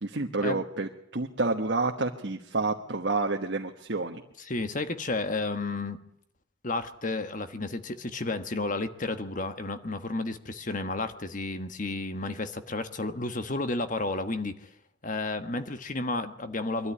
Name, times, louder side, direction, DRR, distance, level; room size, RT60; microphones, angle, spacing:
voice 1, 0.0-4.2, right 3 dB, 60° right, 3 dB, 1.3 m, -29 dB
voice 2, 4.4-6.0 6.6-14.7 15.0-16.9, left 2 dB, 40° left, 9 dB, 1.4 m, -32 dB
23.0 x 13.0 x 9.9 m, 0.75 s
head